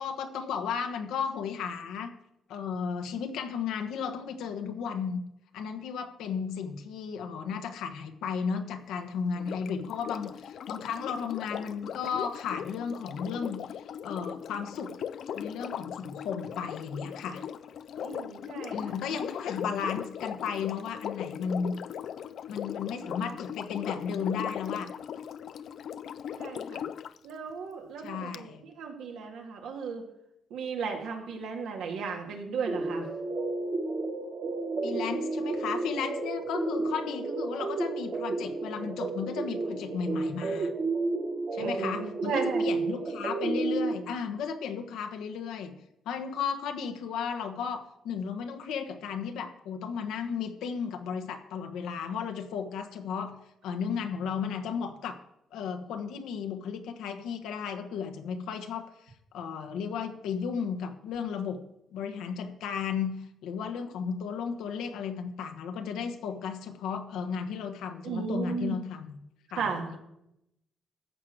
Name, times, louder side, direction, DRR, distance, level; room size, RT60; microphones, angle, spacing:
voice 1, 0.0-2.2 2.5-5.2 5.5-15.0 15.3-17.4 18.7-21.7 22.5-24.9 28.0-28.6 34.8-40.7 41.5-45.8 46.0-55.2 55.5-58.9 59.3-61.6 61.9-69.2 69.5-70.0, left 6 dB, 85° left, 6 dB, 1.3 m, -34 dB
Sink (filling or washing), 9.4-27.2 28.3-28.4, left 9 dB, 65° left, 0.4 m, -39 dB
voice 2, 18.0-19.2 26.4-26.8 27.2-30.0 30.5-33.1 41.6-42.7 68.0-68.8 69.6-70.0, right 5 dB, 85° right, 1 dB, 2.3 m, -35 dB
sound 1, 32.7-43.9, right 3 dB, 45° right, 1.7 m, -32 dB
14.0 x 4.9 x 7.8 m, 0.83 s
cardioid pair, 90°, 0 cm